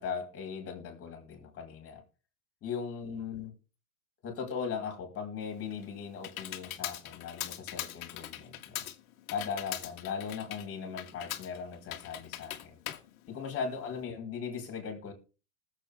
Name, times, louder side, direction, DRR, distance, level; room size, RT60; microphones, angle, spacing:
voice 1, 0.0-2.0 2.6-3.5 4.2-8.9 9.3-12.8 13.3-15.1, left 6 dB, 30° left, 4.6 m, -38 dB
Computer keyboard, 5.4-14.0, left 13 dB, 70° left, 1.7 m, -42 dB
20.0 x 7.6 x 3.5 m
hypercardioid pair, 115°, 43 cm